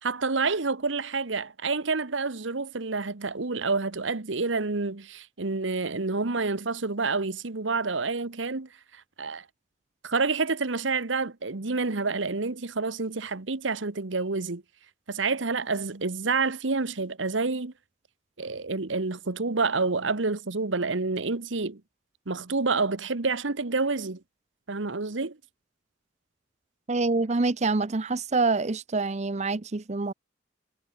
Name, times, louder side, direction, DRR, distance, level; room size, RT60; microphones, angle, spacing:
voice 1, 0.0-9.5 10.0-14.6 15.1-17.7 18.4-21.8 22.3-24.2 24.7-25.4, right 4 dB, 75° right, 1.2 m, -28 dB
voice 2, 26.9-30.1, right 3 dB, 35° right, 0.7 m, -26 dB
head